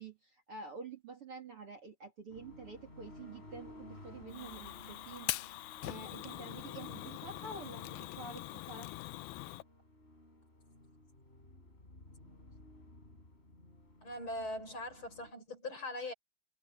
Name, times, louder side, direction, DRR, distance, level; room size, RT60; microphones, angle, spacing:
voice 1, 0.0-8.9, right 4 dB, 40° right, 3.4 m, -48 dB
sound 1, 2.3-15.3, left 1 dB, 15° left, 4.3 m, -56 dB
Fire, 4.3-9.6, left 18 dB, 85° left, 2.6 m, -43 dB
voice 2, 14.0-16.1, left 1 dB, 30° left, 7.2 m, -41 dB
omnidirectional pair, 4.3 m